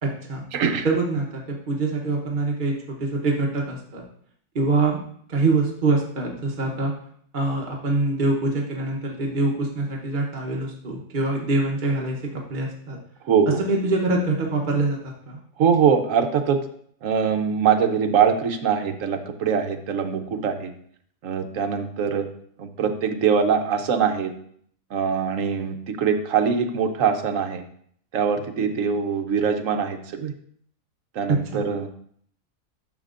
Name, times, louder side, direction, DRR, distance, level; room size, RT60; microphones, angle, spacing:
voice 1, 0.0-0.4 0.8-4.0 4.5-5.0 5.3-6.9 7.3-12.2 12.5-13.0 13.6-15.4 31.3-31.6, right 3 dB, 35° right, -1 dB, 1.0 m, -24 dB
voice 2, 0.5-0.9 13.2-13.6 15.6-16.6 17.0-20.7 21.2-22.3 22.6-24.3 24.9-27.6 28.1-30.3 31.1-31.9, right 7 dB, 60° right, 6 dB, 1.1 m, -22 dB
11.0 x 6.4 x 2.5 m, 0.63 s
omnidirectional pair, 1.6 m